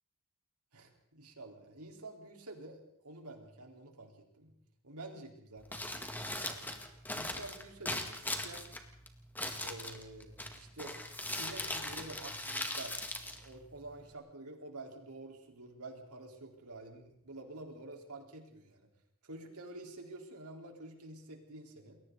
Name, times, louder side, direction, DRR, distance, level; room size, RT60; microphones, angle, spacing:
voice 1, 0.7-4.5 4.8-6.6 7.1-8.7 9.6-11.0 11.3-12.9 13.2-18.9 19.2-22.0, right 2 dB, 80° right, 2 dB, 4.3 m, -49 dB
Crumpling crinkling, 5.6-14.1, left 1 dB, 10° left, 1.9 m, -40 dB
29.0 x 21.5 x 4.1 m, 0.71 s
head